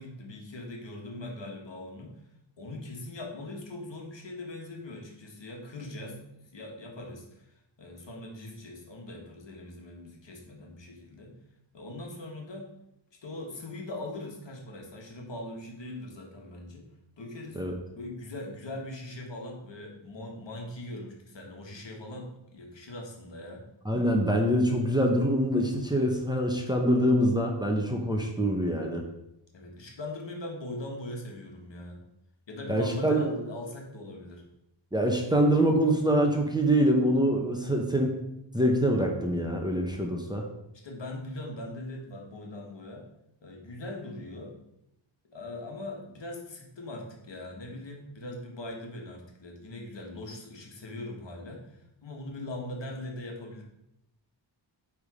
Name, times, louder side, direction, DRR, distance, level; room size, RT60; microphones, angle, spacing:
voice 1, 0.0-2.1 2.6-11.3 11.7-12.7 13.2-16.8 17.2-17.6 17.9-23.6 29.5-32.0 32.5-34.4 40.7-43.1 43.4-44.5 45.3-53.6, left 1 dB, 60° left, 0 dB, 1.7 m, -41 dB
voice 2, 23.8-29.0 32.7-33.2 34.9-38.2 38.5-40.4, equal, 10° right, 1 dB, 0.8 m, -25 dB
8.7 x 3.7 x 4.9 m, 0.84 s
wide cardioid pair, 145°, 48 cm